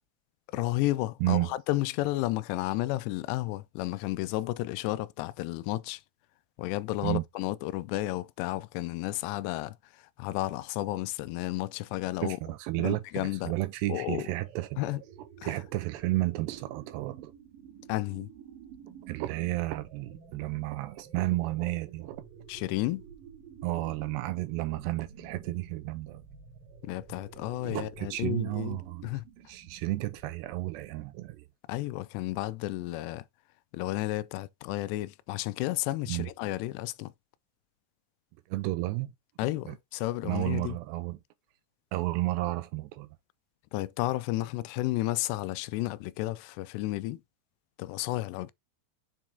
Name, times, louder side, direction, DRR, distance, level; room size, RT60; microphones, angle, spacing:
voice 1, 0.5-6.0 6.6-12.4 12.8-13.5 13.9-14.3 14.8-15.0 15.4-15.6 17.9-18.3 22.5-23.1 26.8-29.2 31.7-33.3 33.7-37.1 39.4-40.8 43.7-47.2 47.8-48.5, left 17 dB, 90° left, 2.7 m, -32 dB
voice 2, 12.2-14.8 15.4-17.3 19.0-22.2 23.6-26.2 27.6-29.0 29.5-31.5 36.1-36.3 38.5-39.1 39.7-39.8 40.2-41.2 41.9-43.1, right 18 dB, 90° right, 3.0 m, -32 dB
sound 1, 13.7-31.3, right 7 dB, 60° right, 3.4 m, -51 dB
7.3 x 4.6 x 3.8 m
omnidirectional pair, 4.8 m